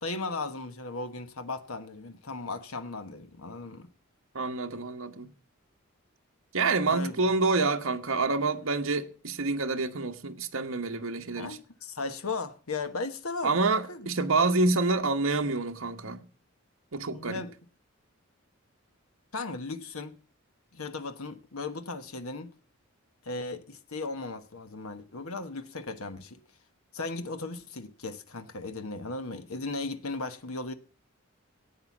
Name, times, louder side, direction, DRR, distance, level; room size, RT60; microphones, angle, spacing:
voice 1, 0.0-3.9 6.9-7.2 11.4-13.5 13.9-14.1 17.1-17.5 19.3-20.2 20.7-22.5 23.2-26.4 26.9-30.7, left 3 dB, 85° left, 1.2 m, -36 dB
voice 2, 4.3-5.3 6.5-11.6 13.4-16.3 16.9-17.4, right 3 dB, 75° right, 1.2 m, -27 dB
15.5 x 8.9 x 7.3 m
head